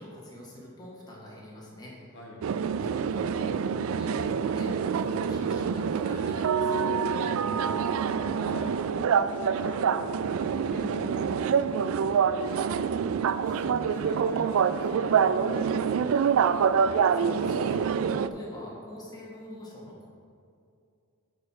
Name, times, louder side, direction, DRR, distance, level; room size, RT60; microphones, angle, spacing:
voice 1, 0.0-2.2 2.8-7.0 17.1-20.1, left 1 dB, 20° left, -4 dB, 1.7 m, -44 dB
sound 1, 2.4-18.3, right 6 dB, 70° right, 0.3 m, -26 dB
voice 2, 7.1-7.6 8.0-8.9 9.1-13.1 13.4-16.3, left 1 dB, 55° left, -3 dB, 1.5 m, -43 dB
9.5 x 4.4 x 6.3 m, 2.5 s
head